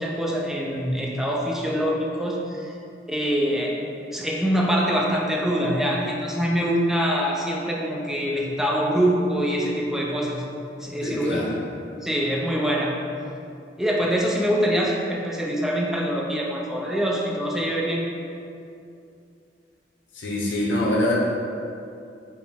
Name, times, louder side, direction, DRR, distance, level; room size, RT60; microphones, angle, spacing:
voice 1, 0.0-2.7 3.1-3.7 4.1-10.4 10.8-11.4 12.0-12.9 13.8-18.0, equal, ahead, -3 dB, 0.4 m, -24 dB
voice 2, 11.0-11.5 20.1-21.1, left 1 dB, 85° left, -4 dB, 0.7 m, -24 dB
5.0 x 2.1 x 3.3 m, 2.6 s
head